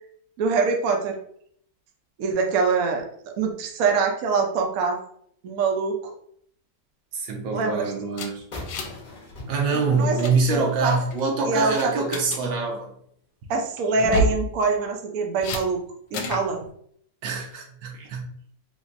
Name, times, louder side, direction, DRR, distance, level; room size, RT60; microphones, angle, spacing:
voice 1, 0.4-1.1 2.2-3.0 3.4-5.0 5.4-5.9 7.5-7.9 9.7-11.0 11.4-11.9 13.5-15.8 16.1-16.6, right 4 dB, 65° right, 3 dB, 0.9 m, -24 dB
voice 2, 7.1-8.4 9.5-12.9 17.2-18.3, right 3 dB, 85° right, 1 dB, 1.5 m, -25 dB
sound 1, 8.1-9.1 9.3-9.5 9.9-10.3 10.9-11.2 11.7-12.4 13.9-14.4 15.4-15.6 16.1-16.5, equal, 75° left, 1.2 m, -28 dB
sound 2, 8.5-11.2, left 2 dB, 40° left, 0.7 m, -41 dB
4.0 x 2.7 x 2.5 m, 0.66 s
omnidirectional pair, 2.0 m